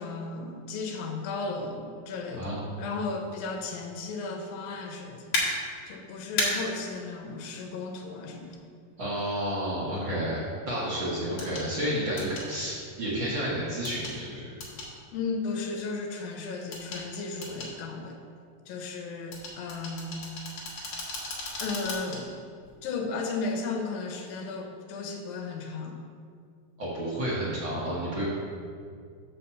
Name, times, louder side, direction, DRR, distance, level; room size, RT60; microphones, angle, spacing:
voice 1, 0.0-5.3 5.9-8.5 15.1-18.2 18.7-20.2 21.6-22.3 22.8-26.0, left 3 dB, 80° left, 2 dB, 2.5 m, -35 dB
sound 1, 5.3-5.4 6.4-6.5 8.5-8.6 11.4-11.7 12.2-12.5 13.8-14.2 14.6-14.9 16.7-17.0 17.4-17.7 19.3-22.2 22.6-22.8, left 3 dB, 50° left, 1.7 m, -33 dB
voice 2, 9.0-14.5 26.8-28.2, equal, 65° right, -7 dB, 1.2 m, -31 dB
5.7 x 5.5 x 6.9 m, 2.2 s
omnidirectional pair, 4.2 m